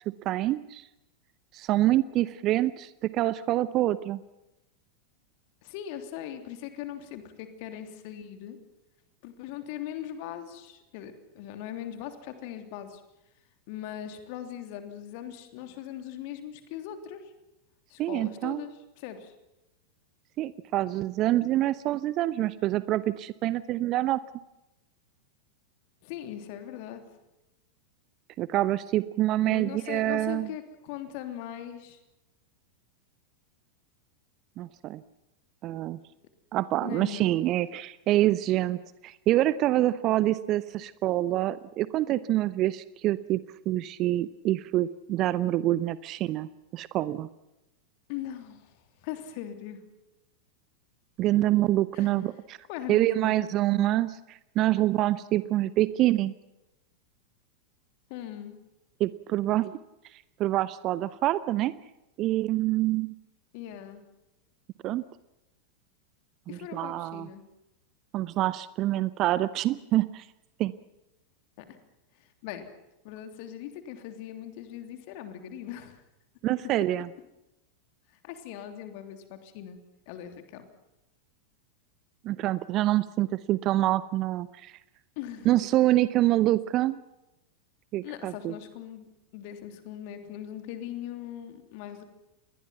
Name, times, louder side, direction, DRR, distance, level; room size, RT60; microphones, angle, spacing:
voice 1, 0.2-0.8 1.5-4.2 18.0-18.6 20.4-24.2 28.4-30.5 34.6-35.0 35.6-36.0 36.5-38.8 39.0-43.4 43.7-47.3 51.2-52.6 52.9-56.3 59.0-59.8 60.4-61.7 62.2-63.1 64.8-65.0 66.5-67.3 68.1-70.2 70.6-70.7 76.4-77.1 82.2-84.7 85.5-87.0 87.9-88.5, right 15 dB, 35° right, 17 dB, 0.7 m, -26 dB
voice 2, 5.6-8.6 9.2-13.0 13.7-17.2 17.9-19.3 26.0-27.0 29.4-32.0 36.8-37.4 48.1-49.8 51.9-52.1 52.7-53.4 58.1-58.6 63.5-64.0 66.5-67.4 71.6-71.7 72.2-72.6 73.0-76.0 78.2-79.8 80.1-80.7 85.2-85.7 88.0-89.1 89.3-92.0, left 11 dB, 45° left, 7 dB, 3.2 m, -40 dB
28.5 x 21.0 x 5.8 m, 0.95 s
figure-of-eight pair, 90°, 0 cm